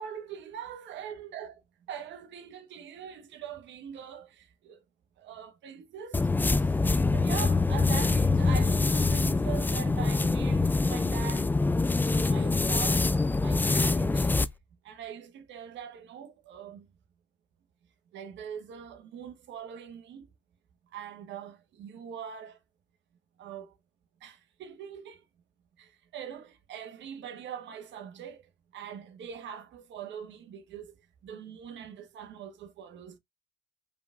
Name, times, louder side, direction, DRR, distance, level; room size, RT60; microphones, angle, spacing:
voice 1, 0.0-1.6 1.9-4.8 5.2-6.3 6.6-6.7 7.1-11.6 12.0-14.3 14.8-16.9 18.1-20.3 20.9-22.6 23.4-23.8 24.2-25.2 25.8-28.4 28.7-30.9 31.2-33.2, right 8 dB, 60° right, 1.2 m, -42 dB
sound 1, 6.1-14.5, left 3 dB, 10° left, 0.3 m, -25 dB
5.0 x 3.5 x 2.4 m
supercardioid pair, 85°, 21 cm